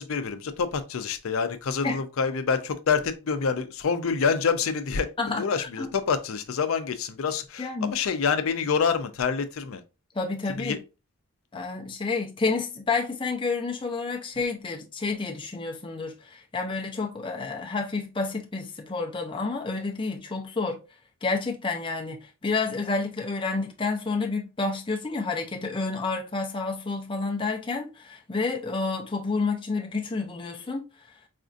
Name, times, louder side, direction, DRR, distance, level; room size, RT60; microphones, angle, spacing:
voice 1, 0.0-9.8 10.5-10.8, left 5 dB, 70° left, 0.5 m, -27 dB
voice 2, 5.2-5.9 7.6-7.9 10.1-10.8 11.5-20.8 21.2-30.9, left 3 dB, 25° left, 0.5 m, -29 dB
4.2 x 2.5 x 2.5 m
head